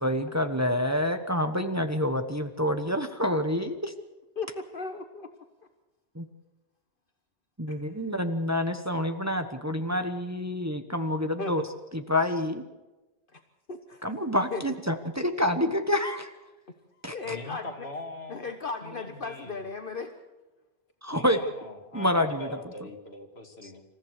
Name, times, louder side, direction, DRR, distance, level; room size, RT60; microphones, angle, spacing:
voice 1, 0.0-3.9 6.1-6.3 7.6-11.6 11.9-12.6 14.0-16.3 17.0-17.4 21.0-21.4 21.9-22.5, left 1 dB, 15° right, 7 dB, 1.2 m, -27 dB
voice 2, 4.3-5.3 7.7-8.1 11.4-11.5 13.3-13.4 13.7-14.1 14.5-14.6 17.1-17.9 18.3-20.1, left 4 dB, 55° left, 6 dB, 1.4 m, -36 dB
voice 3, 17.2-18.5 18.8-19.6 21.1-23.8, left 2 dB, 70° left, 4 dB, 2.6 m, -42 dB
27.5 x 14.5 x 6.6 m, 1.1 s
omnidirectional pair, 1.1 m